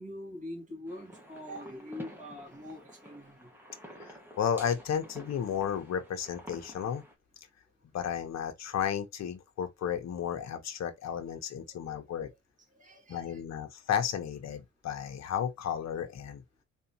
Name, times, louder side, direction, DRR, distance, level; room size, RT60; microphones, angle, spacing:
voice 1, 0.0-3.5 12.7-13.4, left 1 dB, 25° right, 2.5 m, -43 dB
sound 1, 0.9-7.1, equal, 5° right, 1.6 m, -50 dB
voice 2, 4.0-7.0 7.9-12.3 13.1-16.4, left 8 dB, 60° left, 1.1 m, -33 dB
3.9 x 3.4 x 2.8 m
cardioid pair, 90°, 30 cm